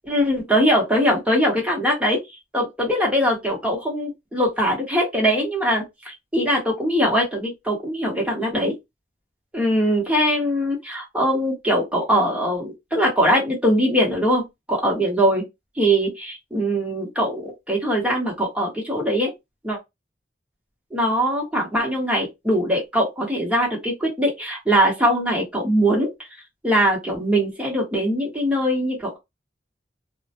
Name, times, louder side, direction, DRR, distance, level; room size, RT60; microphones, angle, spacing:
voice 1, 0.1-2.2 2.5-8.8 9.5-14.4 14.7-15.4 15.8-19.3 19.6-19.8 20.9-26.1 26.6-29.2, equal, 5° right, 1.0 m, -21 dB
2.2 x 2.1 x 2.8 m
head